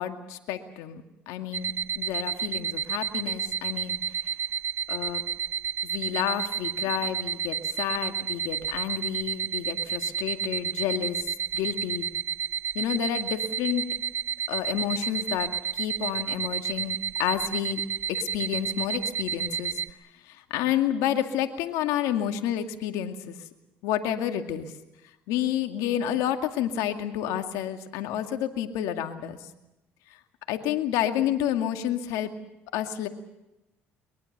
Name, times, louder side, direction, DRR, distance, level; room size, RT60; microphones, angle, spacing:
voice 1, 0.0-4.2 4.9-5.2 5.8-11.3 11.5-12.1 12.7-13.9 14.5-17.8 18.2-19.8 20.2-23.4 23.8-24.7 25.3-29.5 30.5-32.3 32.7-33.1, left 10 dB, 75° left, 6 dB, 2.3 m, -30 dB
sound 1, 1.5-19.9, right 8 dB, 45° right, 1.2 m, -31 dB
23.0 x 22.5 x 6.8 m, 0.94 s
supercardioid pair, 75°, 6 cm